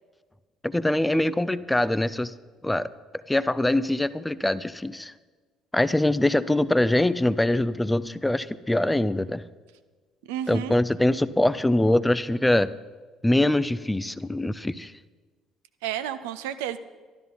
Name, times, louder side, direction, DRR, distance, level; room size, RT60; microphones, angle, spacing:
voice 1, 0.6-2.3 2.6-2.9 3.3-5.1 5.7-9.4 10.5-12.7 13.2-14.9, left 1 dB, 10° left, 16 dB, 0.5 m, -23 dB
voice 2, 10.3-10.8 15.8-16.8, right 11 dB, 65° right, 12 dB, 0.5 m, -31 dB
12.5 x 12.5 x 5.4 m, 1.4 s
figure-of-eight pair, 50°, 0 cm